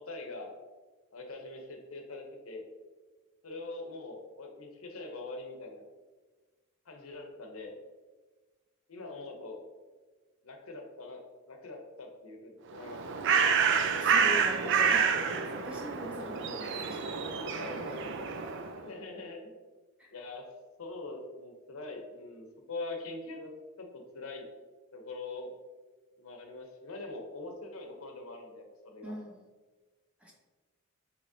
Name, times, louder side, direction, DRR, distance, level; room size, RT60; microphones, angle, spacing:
voice 1, 0.1-0.5 1.1-2.6 3.4-5.8 6.9-7.7 8.9-9.6 10.4-13.2 17.6-17.8 18.7-19.4 20.1-20.5 20.8-23.5 23.8-24.5 24.9-25.5 26.2-29.1, left 2 dB, 85° left, 3 dB, 0.7 m, -43 dB
Bird, 12.7-18.8, right 6 dB, 60° right, 0.4 m, -28 dB
voice 2, 13.8-18.0 20.0-20.1 29.0-29.4 30.2-30.3, left 1 dB, 5° right, -2 dB, 0.8 m, -43 dB
6.0 x 3.1 x 2.7 m, 1.3 s
head